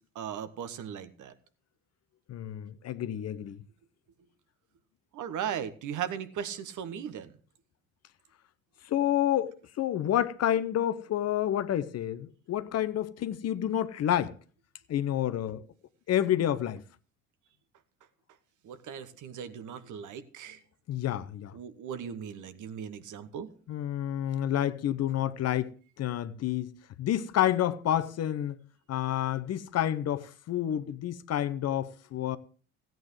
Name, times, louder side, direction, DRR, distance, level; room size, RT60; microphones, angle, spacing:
voice 1, 0.1-1.3 5.1-7.3 18.6-20.6 21.5-23.5, right 8 dB, 50° right, 1.2 m, -37 dB
voice 2, 2.3-3.6 8.8-14.4 14.9-15.6 16.1-16.8 20.9-21.5 23.7-25.7 26.0-26.7 27.0-28.6 28.9-32.4, left 11 dB, 40° left, 0.7 m, -29 dB
16.0 x 9.1 x 3.2 m
figure-of-eight pair, 55°, 39 cm